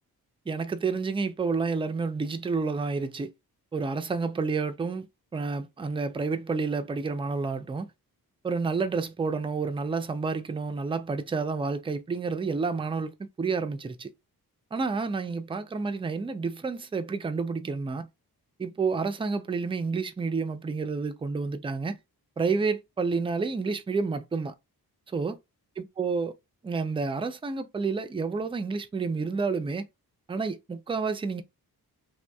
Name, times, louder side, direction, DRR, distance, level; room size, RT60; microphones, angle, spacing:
voice 1, 0.5-3.3 3.7-5.1 5.3-7.9 8.4-14.1 14.7-18.1 18.6-22.0 22.4-24.5 25.1-25.4 25.8-26.4 26.6-29.9 30.3-31.4, right 4 dB, 15° right, 0.3 m, -29 dB
2.6 x 2.6 x 2.2 m
cardioid pair, 80°, 37 cm